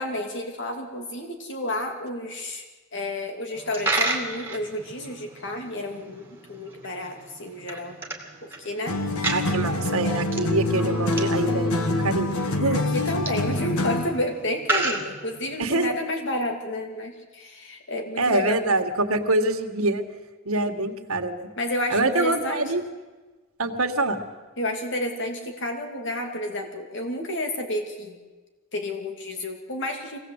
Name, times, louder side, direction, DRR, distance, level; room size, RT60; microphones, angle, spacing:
voice 1, 0.0-2.6 2.9-8.0 8.4-9.0 12.5-18.6 21.6-22.7 24.6-28.2 28.7-30.2, left 1 dB, 55° left, 4 dB, 2.9 m, -31 dB
Coin (dropping), 3.5-15.8, right 2 dB, 10° right, 2.2 m, -33 dB
sound 1, 8.9-14.2, left 2 dB, 85° left, 1.7 m, -25 dB
voice 2, 9.3-12.8 15.6-15.9 18.2-20.0 20.5-21.5 21.9-22.8 23.6-24.2, right 2 dB, 80° right, 4 dB, 1.9 m, -25 dB
23.5 x 17.5 x 8.2 m, 1.3 s
head